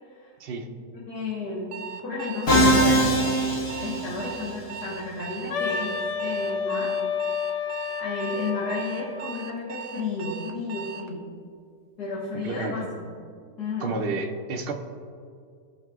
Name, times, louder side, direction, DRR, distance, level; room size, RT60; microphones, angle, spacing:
voice 1, 0.9-1.8 2.0-3.4 3.8-5.9 6.2-6.9 7.3-7.6 8.0-11.3 12.0-13.1 13.6-13.9, left 3 dB, 70° left, -7 dB, 1.9 m, -32 dB
Alarm, 1.7-11.1, right 7 dB, 75° right, 1.2 m, -39 dB
Musical instrument, 2.5-4.6, right 1 dB, 50° left, 1.5 m, -21 dB
Wind instrument woodwind instrument, 5.5-9.3, left 6 dB, 85° left, 1.4 m, -30 dB
voice 2, 12.3-12.9 13.8-14.7, right 3 dB, 55° right, 2 dB, 0.6 m, -30 dB
16.5 x 5.7 x 2.4 m, 2.3 s
omnidirectional pair, 1.8 m